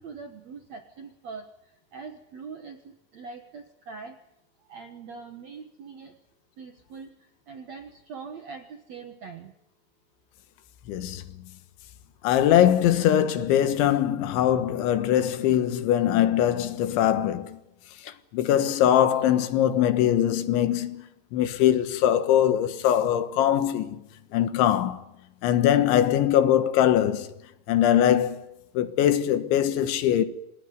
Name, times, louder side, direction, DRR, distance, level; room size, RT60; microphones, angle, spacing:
voice 1, 0.0-4.2 4.6-6.1 6.6-9.5, right 5 dB, 65° right, 1.7 m, -42 dB
voice 2, 10.9-11.3 12.2-17.6 18.0-21.0 21.3-24.0 24.3-25.0 25.4-27.3 27.7-28.5 28.8-30.3, left 11 dB, 85° left, 3.7 m, -22 dB
27.5 x 19.5 x 9.6 m
omnidirectional pair, 5.3 m